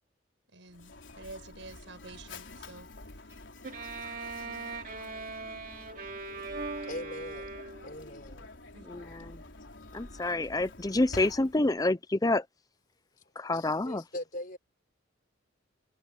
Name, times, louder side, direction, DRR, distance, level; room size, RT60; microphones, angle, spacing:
voice 1, 0.5-3.3 8.7-8.9, right 3 dB, 70° right, 5.7 m, -49 dB
Mechanisms, 0.7-11.8, left 2 dB, 70° left, 4.3 m, -48 dB
Bowed string instrument, 3.6-8.1, right 3 dB, 45° right, 3.1 m, -40 dB
voice 2, 6.8-7.5 7.8-8.5 10.4-10.5 13.5-14.6, left 1 dB, 45° left, 6.3 m, -41 dB
voice 3, 8.9-9.4 9.9-12.4 13.4-14.0, left 2 dB, 20° left, 0.6 m, -28 dB
head